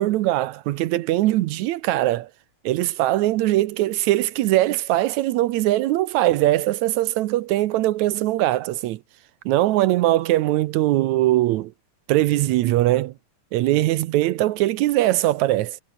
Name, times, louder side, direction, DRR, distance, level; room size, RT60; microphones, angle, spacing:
voice 1, 0.0-2.3 2.6-9.0 9.5-11.7 12.1-13.1 13.5-15.8, right 15 dB, 75° right, 1.9 m, -21 dB
omnidirectional pair, 3.7 m